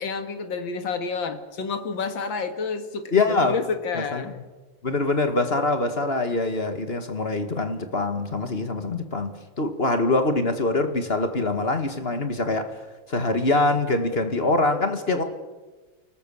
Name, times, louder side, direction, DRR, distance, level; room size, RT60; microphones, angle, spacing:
voice 1, 0.0-4.4, left 4 dB, 60° left, 8 dB, 2.5 m, -29 dB
voice 2, 3.1-3.5 4.0-4.4 4.8-12.7 13.1-15.2, left 2 dB, 30° left, 7 dB, 1.9 m, -24 dB
29.5 x 19.0 x 7.2 m, 1.2 s
omnidirectional pair, 2.4 m